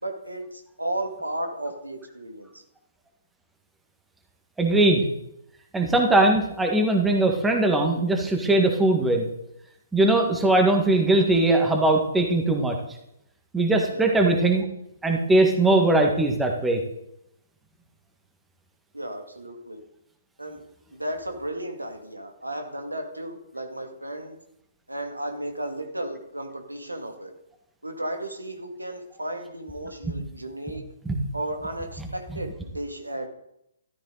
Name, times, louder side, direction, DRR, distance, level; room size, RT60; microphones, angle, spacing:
voice 1, 0.0-2.6 13.9-14.1 18.9-19.8 20.4-20.6 20.9-24.4 24.9-27.3 27.8-30.8 31.3-33.3, right 1 dB, 90° right, 4 dB, 2.4 m, -34 dB
voice 2, 4.6-5.1 5.7-9.3 9.9-12.8 13.5-14.6 15.0-16.8 31.1-31.2, right 2 dB, 5° right, 3 dB, 1.8 m, -20 dB
14.0 x 13.0 x 4.1 m, 0.82 s
figure-of-eight pair, 130°, 0 cm